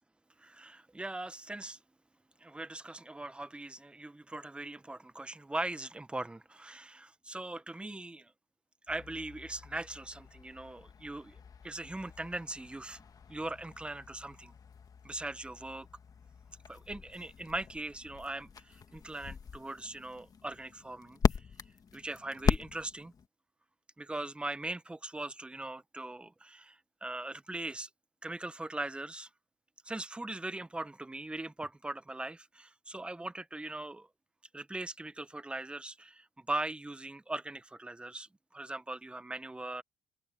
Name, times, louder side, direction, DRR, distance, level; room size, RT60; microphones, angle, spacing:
voice 1, 0.4-1.8 2.4-8.3 8.9-11.4 11.6-13.0 13.3-14.5 15.0-15.9 16.7-21.5 21.9-23.1 24.0-27.9 28.2-29.3 29.8-34.1 34.5-39.8, right 2 dB, 10° right, 1.2 m, -40 dB
sound 1, 8.9-23.3, left 6 dB, 35° left, 1.6 m, -39 dB
cardioid pair, 95°, 10 cm